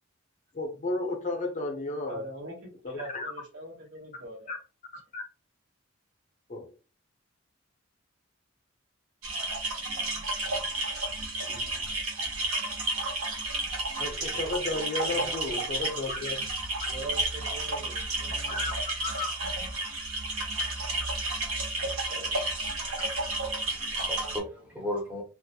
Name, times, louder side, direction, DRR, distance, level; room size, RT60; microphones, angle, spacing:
voice 1, 0.5-2.2 2.8-3.3 4.5-4.6 5.1-5.2 6.5-6.8 11.4-11.9 14.0-16.5 18.5-18.7 19.0-19.3, left 2 dB, 35° left, 0.5 m, -33 dB
voice 2, 2.1-2.5 2.9-4.5 14.3-14.5 15.1-15.6 16.9-18.7 21.8-22.4, right 2 dB, 55° right, 0.9 m, -42 dB
sound 1, 9.2-24.4, right 2 dB, 85° right, 0.7 m, -32 dB
voice 3, 23.5-25.2, left 1 dB, 5° right, 0.6 m, -36 dB
2.2 x 2.0 x 2.7 m
head